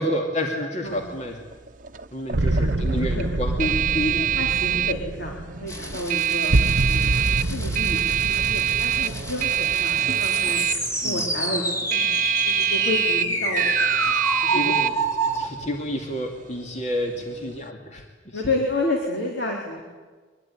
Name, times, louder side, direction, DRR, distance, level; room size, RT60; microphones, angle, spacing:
voice 1, 0.0-1.4 2.1-3.8 11.0-11.3 14.5-15.0 15.2-18.0 18.3-18.4, equal, 35° left, 2 dB, 2.5 m, -30 dB
sound 1, 0.9-17.7, right 12 dB, 45° right, 0.9 m, -26 dB
sound 2, 2.3-11.2, right 2 dB, 70° right, 0.9 m, -27 dB
voice 2, 2.5-3.3 3.6-7.0 7.5-10.6 11.0-12.2 12.4-13.9 14.4-15.1 15.6-15.7 18.3-19.8, left 2 dB, 65° left, -1 dB, 3.8 m, -30 dB
sound 3, 5.7-15.5, right 1 dB, 15° left, 2.8 m, -28 dB
24.5 x 21.0 x 9.9 m, 1.4 s
head